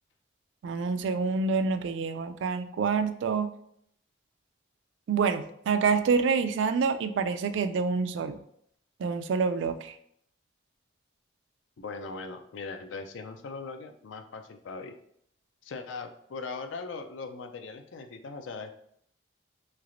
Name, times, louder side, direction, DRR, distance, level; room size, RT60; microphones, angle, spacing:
voice 1, 0.6-3.5 5.1-8.4 9.0-9.9, right 5 dB, 75° right, 10 dB, 0.3 m, -27 dB
voice 2, 11.8-15.0 15.6-18.8, left 4 dB, 80° left, 7 dB, 0.4 m, -40 dB
3.2 x 3.1 x 2.5 m, 0.69 s
head